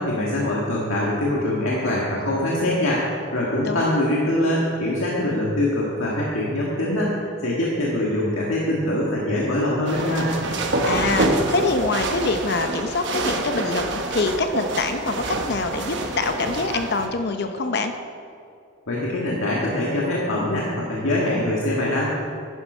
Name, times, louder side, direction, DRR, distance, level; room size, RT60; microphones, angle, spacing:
voice 1, 0.0-10.3 18.9-22.4, left 1 dB, 85° left, -5 dB, 1.7 m, -23 dB
sound 1, 9.9-17.1, right 2 dB, 60° right, 1.0 m, -26 dB
voice 2, 10.8-17.9, left 3 dB, 50° left, 7 dB, 0.7 m, -25 dB
10.5 x 10.0 x 5.4 m, 2.4 s
head